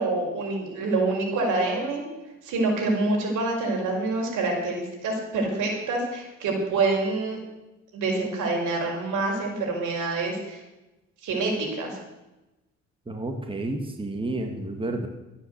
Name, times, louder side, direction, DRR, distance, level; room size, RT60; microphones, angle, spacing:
voice 1, 0.0-2.0 2.4-7.4 7.9-10.6 11.2-12.0, right 3 dB, 80° right, 0 dB, 5.3 m, -26 dB
voice 2, 13.1-15.1, right 2 dB, 15° right, 4 dB, 2.1 m, -30 dB
13.5 x 10.0 x 8.2 m, 1.0 s
cardioid pair, 90°, 30 cm